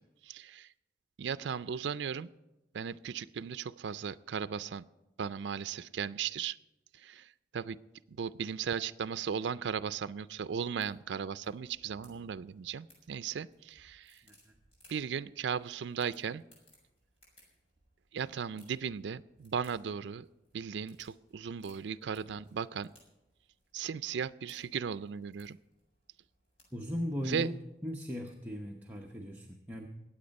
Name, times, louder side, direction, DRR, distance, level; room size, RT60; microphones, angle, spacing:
voice 1, 0.2-0.7 1.2-2.3 2.7-4.8 5.2-6.6 7.0-7.8 8.2-14.2 14.9-16.4 18.1-20.3 20.5-22.9 23.7-25.6 27.3-27.5, right 7 dB, 90° right, 15 dB, 0.4 m, -36 dB
sound 1, 9.8-29.2, equal, 35° left, 5.8 m, -67 dB
voice 2, 14.2-14.5 26.7-27.6 27.8-29.9, equal, 10° right, -1 dB, 0.8 m, -38 dB
21.5 x 8.7 x 5.3 m, 0.99 s
head